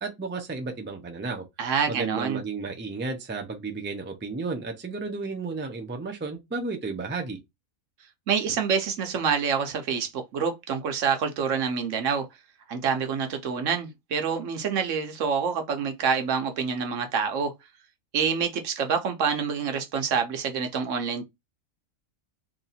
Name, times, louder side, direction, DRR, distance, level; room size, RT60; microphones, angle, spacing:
voice 1, 0.0-1.4 1.9-7.4, right 4 dB, 15° right, 0.5 m, -33 dB
voice 2, 1.6-2.4 8.3-12.3 12.7-17.5 18.1-21.2, right 6 dB, 70° right, 1.0 m, -27 dB
3.0 x 2.7 x 4.1 m
omnidirectional pair, 1.4 m